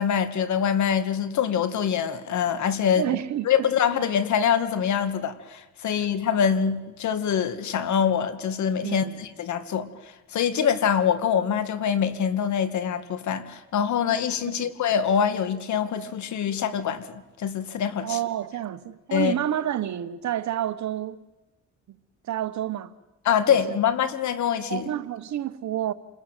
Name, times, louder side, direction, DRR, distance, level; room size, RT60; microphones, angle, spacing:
voice 1, 0.0-3.0 3.5-9.9 10.3-18.2 19.1-19.3 23.3-24.9, left 8 dB, 70° left, 2.1 m, -24 dB
voice 2, 3.0-3.7 5.8-6.0 8.8-9.2 14.5-14.7 18.0-21.2 22.3-22.9 23.5-23.8 24.7-25.9, right 11 dB, 65° right, 1.3 m, -29 dB
29.0 x 20.5 x 9.2 m
cardioid pair, 90°, 30 cm